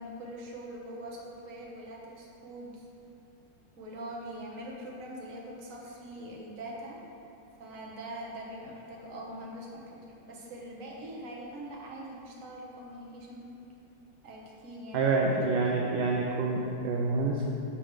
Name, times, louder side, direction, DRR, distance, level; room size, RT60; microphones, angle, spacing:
voice 1, 0.0-2.9 3.8-7.0 7.6-13.6 14.2-15.3, right 1 dB, 45° right, -3 dB, 1.4 m, -43 dB
voice 2, 14.9-17.5, right 3 dB, 75° right, -1 dB, 1.2 m, -27 dB
9.9 x 6.0 x 3.2 m, 2.9 s
omnidirectional pair, 2.3 m